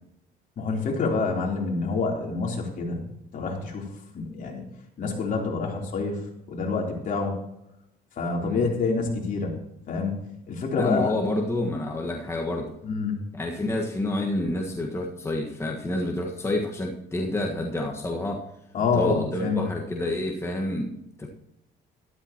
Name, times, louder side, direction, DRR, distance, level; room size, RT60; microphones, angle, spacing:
voice 1, 0.6-3.1 3.3-3.9 4.1-4.6 5.0-6.2 6.5-7.3 8.2-9.5 9.9-10.1 10.5-11.1 12.8-13.2 18.7-19.6, left 4 dB, 50° left, 0 dB, 3.5 m, -27 dB
voice 2, 8.4-8.7 10.8-12.7 13.3-18.4 18.9-20.9 21.2-21.3, left 1 dB, 15° left, 0 dB, 1.5 m, -28 dB
13.0 x 12.5 x 3.0 m, 0.82 s
cardioid pair, 110°, 17 cm